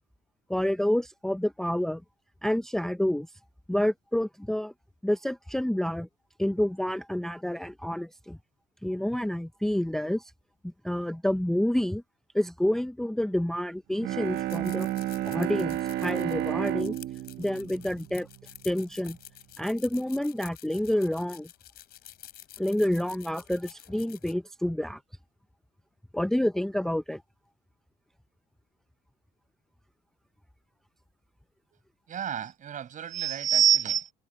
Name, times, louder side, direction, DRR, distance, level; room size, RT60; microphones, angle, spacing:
voice 1, 0.5-2.0 2.4-3.3 3.7-4.7 5.0-6.1 6.4-8.4 8.8-10.3 10.6-12.0 12.3-14.9 15.3-16.9 17.4-18.3 18.6-19.2 19.6-21.5 22.6-25.0 26.1-27.2, left 1 dB, ahead, 0.5 m, -28 dB
Bowed string instrument, 13.9-18.8, right 13 dB, 70° right, 1.3 m, -32 dB
sound 1, 14.2-24.3, left 13 dB, 70° left, 3.3 m, -50 dB
voice 2, 32.1-34.1, right 9 dB, 50° right, 7.0 m, -26 dB
cardioid pair, 110°, 17 cm